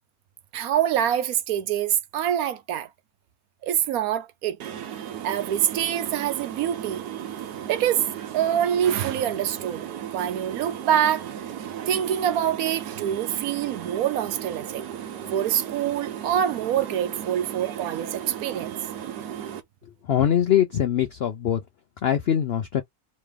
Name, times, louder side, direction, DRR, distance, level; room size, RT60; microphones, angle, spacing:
voice 1, 0.5-2.9 3.6-4.6 5.2-7.0 7.7-8.0 8.3-9.9 10.1-11.3 11.9-14.8 15.3-18.7, right 10 dB, 70° right, 1.0 m, -25 dB
sound 1, 4.6-19.6, right 10 dB, 85° right, 1.3 m, -36 dB
voice 2, 20.1-21.6 22.0-22.8, left 10 dB, 70° left, 0.5 m, -22 dB
3.1 x 3.1 x 3.4 m
omnidirectional pair, 1.7 m